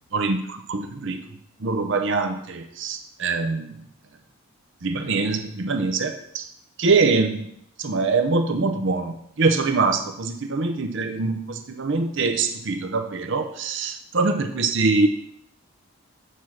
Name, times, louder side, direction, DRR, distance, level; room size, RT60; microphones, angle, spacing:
voice 1, 0.1-1.2 1.6-3.8 4.8-6.5 6.8-7.5 7.8-15.1, right 3 dB, 55° right, 7 dB, 0.7 m, -24 dB
8.5 x 4.5 x 7.4 m, 0.73 s
head